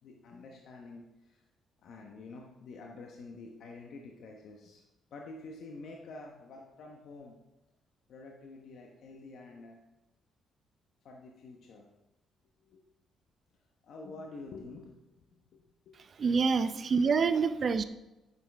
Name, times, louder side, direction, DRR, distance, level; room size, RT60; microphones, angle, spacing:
voice 1, 0.0-1.5 1.8-4.8 5.1-7.4 8.1-9.8 11.0-11.9 12.6-12.8 13.8-16.0 17.3-17.6, left 3 dB, 70° left, 0 dB, 1.1 m, -48 dB
voice 2, 16.2-17.8, right 5 dB, 50° right, 12 dB, 0.6 m, -26 dB
9.8 x 7.4 x 3.5 m, 0.97 s
supercardioid pair, 60°, 0 cm